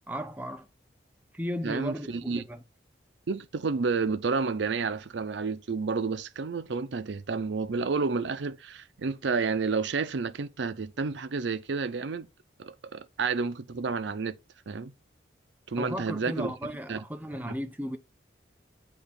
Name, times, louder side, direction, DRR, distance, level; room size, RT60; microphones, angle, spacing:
voice 1, 0.1-0.7 1.3-2.6 15.8-18.0, equal, 10° right, 0.5 m, -35 dB
voice 2, 1.6-2.4 3.3-12.3 12.6-14.4 14.7-14.9 15.7-16.5 16.9-17.0 17.5-17.6, right 4 dB, 80° right, 0.5 m, -30 dB
8.4 x 2.9 x 4.0 m
head